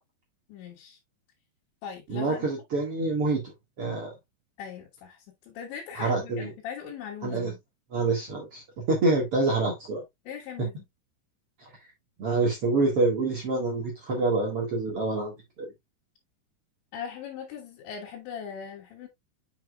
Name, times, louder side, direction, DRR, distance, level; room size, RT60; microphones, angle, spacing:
voice 1, 0.5-1.0 1.8-2.5 4.6-7.6 10.3-10.8 16.9-19.1, left 7 dB, 75° left, 3.7 m, -40 dB
voice 2, 2.1-3.5 3.8-4.1 6.0-6.5 7.2-7.5 7.9-10.0 12.2-15.7, right 3 dB, 55° right, 1.7 m, -26 dB
7.3 x 7.0 x 2.3 m
omnidirectional pair, 5.3 m